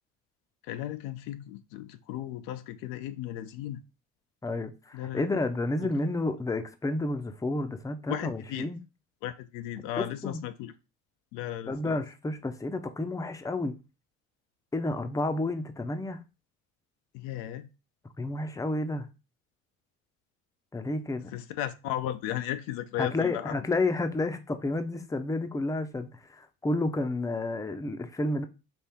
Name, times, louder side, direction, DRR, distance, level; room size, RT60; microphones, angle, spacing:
voice 1, 0.7-3.8 4.9-5.3 5.8-5.9 8.1-8.7 9.2-10.7 11.3-12.0 17.1-17.7 21.3-23.6, left 12 dB, 70° left, 0.5 m, -35 dB
voice 2, 4.4-8.8 10.0-10.4 11.7-13.7 14.7-16.2 18.2-19.1 20.7-21.3 23.0-28.5, left 2 dB, 10° left, 0.6 m, -30 dB
4.4 x 2.7 x 3.5 m
hypercardioid pair, 60°, 36 cm